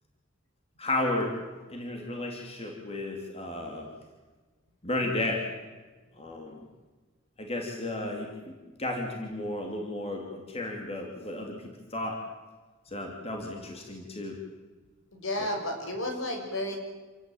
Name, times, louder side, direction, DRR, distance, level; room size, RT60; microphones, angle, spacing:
voice 1, 0.8-1.4 1.7-3.9 4.8-5.4 6.2-6.6 7.4-11.6 11.9-12.2 12.9-14.4 15.4-15.5, left 2 dB, 30° left, 1 dB, 3.1 m, -33 dB
voice 2, 15.1-16.8, left 1 dB, 65° left, 3 dB, 6.2 m, -32 dB
28.0 x 17.0 x 9.2 m, 1.3 s
head